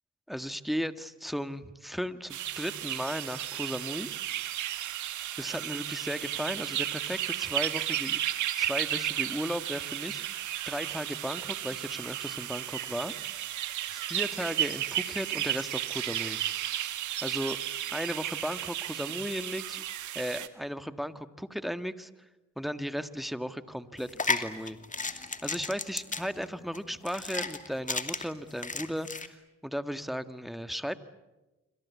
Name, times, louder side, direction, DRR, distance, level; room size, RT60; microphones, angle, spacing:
voice 1, 0.3-4.1 5.4-8.2 8.6-13.1 13.9-16.4 17.2-17.6 17.9-19.8 20.1-22.1 22.6-31.0, equal, ahead, 11 dB, 1.6 m, -36 dB
sound 1, 2.3-20.5, right 12 dB, 80° right, 1.8 m, -34 dB
sound 2, 24.0-29.3, left 3 dB, 25° left, 2.6 m, -34 dB
27.0 x 25.5 x 8.5 m, 1.1 s
cardioid pair, 70°, 29 cm